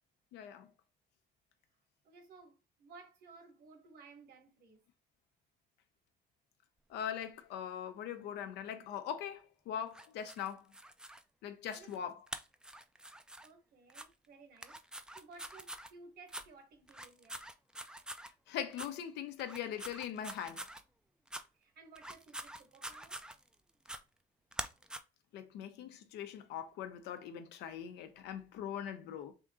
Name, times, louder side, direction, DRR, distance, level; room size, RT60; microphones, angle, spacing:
voice 1, 0.3-0.7 6.9-10.6 11.4-12.2 18.5-20.7 25.3-29.3, left 9 dB, 85° left, 0.7 m, -41 dB
voice 2, 2.0-4.8 11.5-12.0 13.4-17.4 21.5-23.2, right 4 dB, 70° right, 1.2 m, -57 dB
sound 1, 9.9-11.2 11.7-12.0 12.3-13.5 13.9-14.1 14.6-15.9 16.3-16.5 16.9-18.3 18.7-18.9 19.4-20.8 21.3-21.4 22.0-23.5 23.9-24.0 24.5-25.0, right 1 dB, 5° right, 0.3 m, -46 dB
3.6 x 2.7 x 3.6 m
cardioid pair, 110°, 17 cm